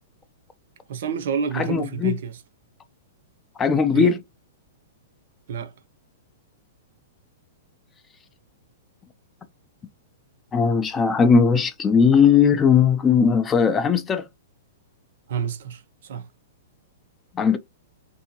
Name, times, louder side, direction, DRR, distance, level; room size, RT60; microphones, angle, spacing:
voice 1, 0.9-2.4 3.9-4.2 5.5-5.7 15.3-16.2, right 7 dB, 60° right, 0.6 m, -28 dB
voice 2, 1.5-2.2 3.6-4.2 10.5-14.3 17.4-17.6, left 6 dB, 15° left, 0.4 m, -18 dB
3.5 x 2.7 x 2.8 m
hypercardioid pair, 160°, 0 cm